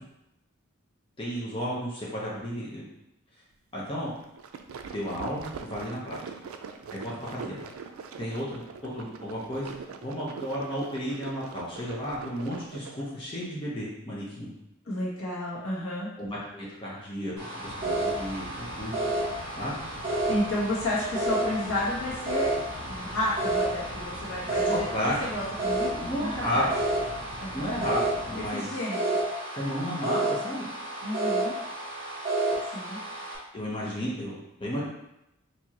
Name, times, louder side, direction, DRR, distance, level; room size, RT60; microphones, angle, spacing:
voice 1, 1.2-2.8 3.7-4.1 4.9-6.2 6.9-7.6 8.2-9.7 10.0-14.5 16.2-18.9 19.6-19.8 24.7-25.1 26.0-26.6 27.5-28.7 29.5-30.6 33.5-34.3 34.6-34.8, equal, 25° left, -7 dB, 0.8 m, -33 dB
sound 1, 4.2-13.1, right 5 dB, 85° right, 0.4 m, -42 dB
voice 2, 14.8-16.1 20.3-26.7 27.4-27.7 28.4-29.2 31.0-31.5 32.7-33.0, left 1 dB, 75° left, -6 dB, 1.4 m, -32 dB
sound 2, 17.4-33.4, right 2 dB, 25° right, 1.4 m, -31 dB
sound 3, 17.6-28.5, left 2 dB, 45° left, 0.4 m, -44 dB
4.5 x 2.7 x 2.9 m, 0.86 s
head